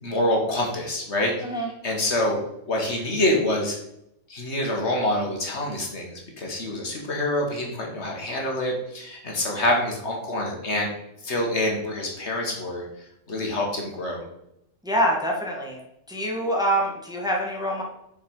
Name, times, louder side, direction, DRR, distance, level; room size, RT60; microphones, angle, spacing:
voice 1, 0.0-1.3 1.8-2.4 2.7-3.8 4.3-10.9 11.2-12.8 13.3-14.2, left 1 dB, 60° left, 0 dB, 1.9 m, -26 dB
voice 2, 14.8-15.8 16.1-17.8, equal, 5° right, -2 dB, 1.4 m, -25 dB
5.9 x 5.4 x 5.5 m, 0.80 s
omnidirectional pair, 1.3 m